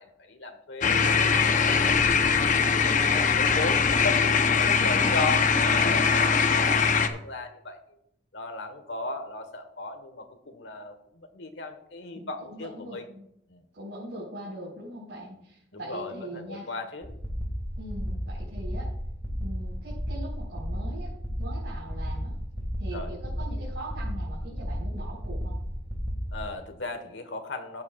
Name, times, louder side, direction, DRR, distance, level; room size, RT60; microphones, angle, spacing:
voice 1, 0.0-2.0 2.4-7.8 8.3-13.0 13.5-13.6 15.7-17.1 22.9-23.1 26.3-27.8, left 2 dB, 75° left, 7 dB, 1.4 m, -36 dB
sound 1, 0.8-7.1, left 5 dB, 45° left, 0.8 m, -22 dB
voice 2, 2.5-3.4 4.6-5.3 12.1-13.3 13.7-16.7 17.8-18.9 19.4-22.3 22.8-25.6, right 1 dB, 85° right, -6 dB, 4.6 m, -41 dB
sound 2, 17.0-26.5, equal, 10° right, 1.9 m, -33 dB
14.5 x 9.3 x 2.4 m, 0.76 s
head